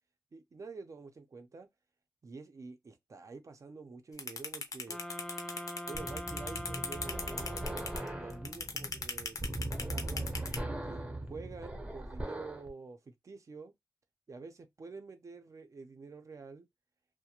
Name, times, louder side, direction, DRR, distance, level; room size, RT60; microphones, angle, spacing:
voice 1, 0.3-1.7 2.2-5.0 5.5-10.4 10.8-13.7 14.3-16.7, right 4 dB, 50° right, 0.5 m, -49 dB
sound 1, 4.2-10.6, left 4 dB, 55° left, 0.6 m, -37 dB
sound 2, 4.9-8.8, left 1 dB, 10° left, 0.4 m, -44 dB
sound 3, 5.9-12.7, right 1 dB, 20° right, 0.7 m, -40 dB
2.3 x 2.1 x 2.8 m
wide cardioid pair, 85°, 7 cm